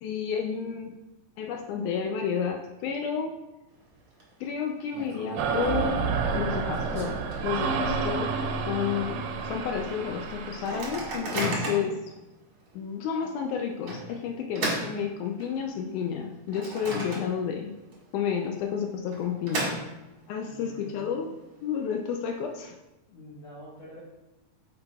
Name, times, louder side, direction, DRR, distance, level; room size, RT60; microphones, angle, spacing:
voice 1, 0.0-1.0 1.4-3.3 4.4-6.1 6.3-7.2 7.4-8.3 8.7-12.2 12.7-17.7 18.1-19.8 20.3-21.3 21.6-22.8, left 7 dB, 80° left, 3 dB, 1.8 m, -31 dB
Microwave oven, 3.7-4.2 4.5-4.6 4.9-8.0 8.4-8.5 8.8-9.1 9.6-9.7 10.5-12.0 12.6-12.7 13.9-15.7 16.1-17.6 17.9-18.0 18.9-20.3, right 1 dB, 50° right, 2.0 m, -35 dB
sound 1, 5.4-11.1, right 4 dB, 90° right, 2.3 m, -30 dB
voice 2, 20.4-21.4 23.1-24.0, equal, 60° left, -7 dB, 1.9 m, -47 dB
8.7 x 5.9 x 2.3 m, 0.99 s
omnidirectional pair, 3.9 m